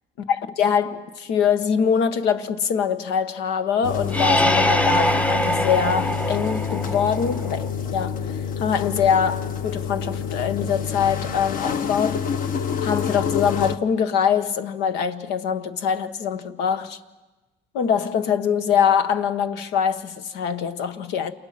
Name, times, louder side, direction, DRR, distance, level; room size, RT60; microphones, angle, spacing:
voice 1, 0.3-12.2 12.8-17.0 17.7-21.3, left 7 dB, 90° left, 1.4 m, -23 dB
sound 1, 3.8-13.8, left 7 dB, 55° left, 1.2 m, -27 dB
sound 2, 4.1-7.7, equal, 10° left, 0.7 m, -23 dB
29.0 x 28.5 x 6.0 m
cardioid pair, 110°, 17 cm